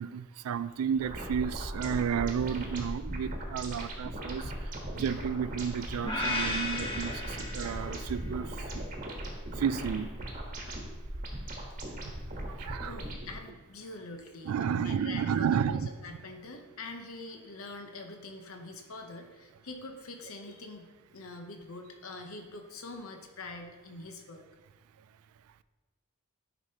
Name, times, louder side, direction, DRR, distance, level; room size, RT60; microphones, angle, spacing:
voice 1, 0.0-4.4 4.9-8.5 9.6-10.1 12.6-12.9 14.5-15.9, right 7 dB, 75° right, 15 dB, 0.3 m, -32 dB
sound 1, 1.0-13.3, right 1 dB, 35° right, 1.2 m, -38 dB
sound 2, 6.0-8.2, left 1 dB, 25° left, 1.0 m, -34 dB
voice 2, 12.8-24.4, left 2 dB, 70° left, 4 dB, 0.8 m, -44 dB
9.7 x 5.2 x 2.8 m, 1.3 s
head